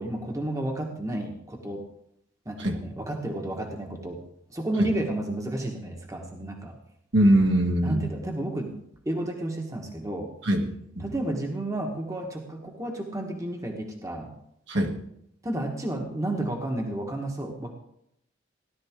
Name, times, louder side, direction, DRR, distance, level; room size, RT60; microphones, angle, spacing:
voice 1, 0.0-1.8 2.4-4.2 4.5-6.8 7.8-8.8 9.0-10.3 11.0-14.4 15.4-17.7, right 1 dB, 15° right, 2 dB, 1.4 m, -31 dB
voice 2, 7.1-8.0 10.4-11.1 14.7-15.0, right 1 dB, 65° right, 1 dB, 1.8 m, -22 dB
16.5 x 11.5 x 3.7 m, 0.76 s
head